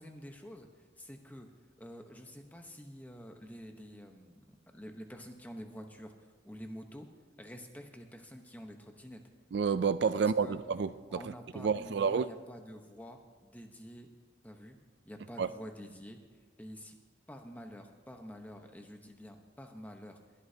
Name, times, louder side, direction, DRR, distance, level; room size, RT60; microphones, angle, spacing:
voice 1, 0.0-1.5 1.8-6.1 6.4-7.1 7.4-9.2 10.4-10.6 11.1-14.1 14.4-14.8 15.0-16.2 16.6-17.0 17.3-20.2, equal, 10° left, 0.9 m, -48 dB
voice 2, 9.5-10.9 11.6-12.3 15.4-15.5, right 6 dB, 60° right, 0.4 m, -29 dB
22.5 x 11.5 x 2.8 m
head